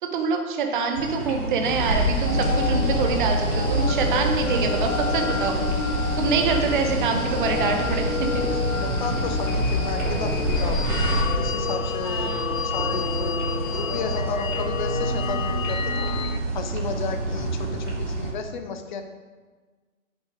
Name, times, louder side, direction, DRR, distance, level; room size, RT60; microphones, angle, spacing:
voice 1, 0.0-5.6 6.2-8.3 12.0-12.5, right 5 dB, 35° right, 4 dB, 1.1 m, -25 dB
sound 1, 0.9-18.3, right 2 dB, 55° right, 2.9 m, -30 dB
sound 2, 1.6-11.2, equal, 75° right, 2.6 m, -27 dB
sound 3, 2.2-16.4, left 7 dB, 65° left, 0.7 m, -30 dB
voice 2, 8.8-10.9 11.4-16.1 16.5-19.0, left 5 dB, 35° left, 7 dB, 0.8 m, -33 dB
8.7 x 6.5 x 4.8 m, 1.4 s
figure-of-eight pair, 130°, 44 cm